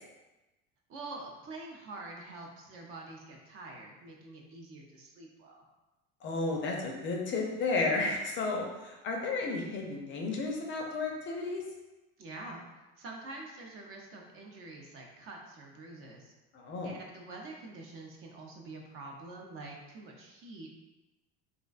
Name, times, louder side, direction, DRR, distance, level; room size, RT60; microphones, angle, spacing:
voice 1, 0.9-5.7 12.2-12.6 13.0-16.3 16.8-20.7, right 2 dB, 45° right, 0 dB, 0.5 m, -46 dB
voice 2, 6.2-11.6 16.5-16.9, left 3 dB, 40° left, 0 dB, 0.4 m, -33 dB
2.5 x 2.1 x 2.4 m, 1.1 s
supercardioid pair, 100°, 31 cm